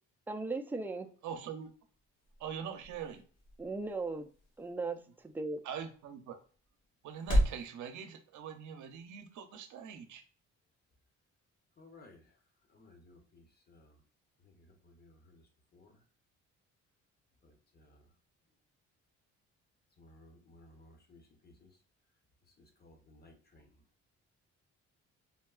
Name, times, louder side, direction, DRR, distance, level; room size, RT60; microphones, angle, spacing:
voice 1, 0.3-1.1 3.6-4.3 4.6-5.0 5.2-5.6, right 3 dB, 5° right, 0.3 m, -37 dB
voice 2, 1.2-1.7 2.4-3.2 5.6-6.4 7.0-10.2, right 8 dB, 75° right, 0.6 m, -43 dB
sound 1, 1.4-7.7, equal, 75° left, 1.4 m, -37 dB
voice 3, 11.8-12.2 12.7-13.4 13.7-13.9 15.0-15.4 15.7-15.9 20.0-21.7 22.8-23.6, left 2 dB, 30° left, 0.8 m, -58 dB
3.6 x 2.3 x 2.3 m
cardioid pair, 90°, 30 cm